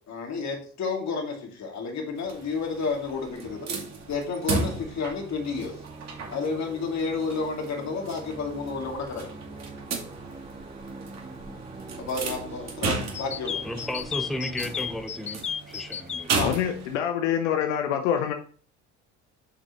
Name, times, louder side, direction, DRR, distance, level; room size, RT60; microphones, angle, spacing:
voice 1, 0.1-3.7 4.1-5.7 6.3-9.3 12.0-13.6 16.3-16.6, left 4 dB, 45° left, 1 dB, 2.5 m, -31 dB
sound 1, 2.2-17.0, right 4 dB, 45° right, 2.1 m, -35 dB
sound 2, 5.3-15.0, right 3 dB, 20° right, 1.7 m, -44 dB
sound 3, 13.1-16.2, left 8 dB, 20° left, 0.3 m, -32 dB
voice 2, 13.6-16.3, left 1 dB, ahead, 6 dB, 1.0 m, -34 dB
voice 3, 16.4-18.3, left 9 dB, 75° left, 6 dB, 0.8 m, -26 dB
8.0 x 6.1 x 3.1 m, 0.43 s
hypercardioid pair, 60°, 37 cm